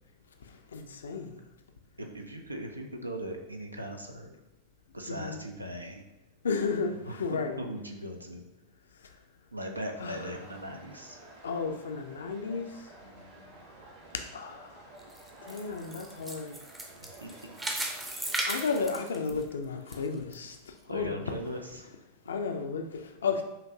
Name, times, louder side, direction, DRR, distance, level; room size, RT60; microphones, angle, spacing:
voice 1, 0.7-1.4 5.1-5.4 6.4-7.6 10.0-10.3 11.4-12.9 14.3-14.8 15.4-16.6 18.5-21.3 22.3-23.4, left 4 dB, 65° left, 6 dB, 0.4 m, -33 dB
voice 2, 2.0-4.4 4.9-6.0 6.9-7.2 7.6-8.4 9.5-11.2 13.0-13.5 17.0-17.6 20.9-21.9 23.2-23.3, right 1 dB, 85° right, 4 dB, 0.5 m, -39 dB
sound 1, 9.9-18.4, right 2 dB, 50° right, 1.2 m, -52 dB
sound 2, 15.0-19.9 20.3-20.4 21.0-21.1, right 2 dB, 10° right, 0.6 m, -36 dB
5.8 x 2.5 x 2.7 m, 0.94 s
figure-of-eight pair, 90°, 0 cm